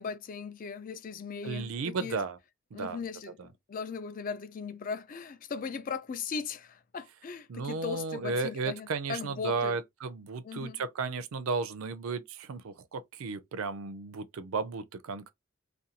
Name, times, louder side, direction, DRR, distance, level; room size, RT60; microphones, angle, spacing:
voice 1, 0.0-2.2 2.7-9.8 10.4-10.8, left 5 dB, 40° left, 0.3 m, -38 dB
voice 2, 1.4-2.4 2.7-3.0 7.5-15.3, right 4 dB, 80° right, 0.4 m, -34 dB
2.5 x 2.2 x 2.8 m
head